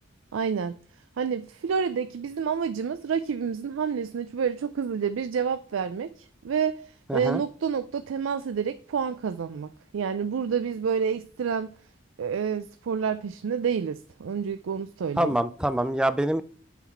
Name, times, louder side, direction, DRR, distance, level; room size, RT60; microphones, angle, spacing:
voice 1, 0.3-0.8 1.2-11.7 12.2-15.4, right 6 dB, 90° right, 0.4 m, -29 dB
voice 2, 7.1-7.4 15.2-16.4, right 1 dB, 5° right, 0.3 m, -25 dB
7.1 x 4.0 x 4.4 m
head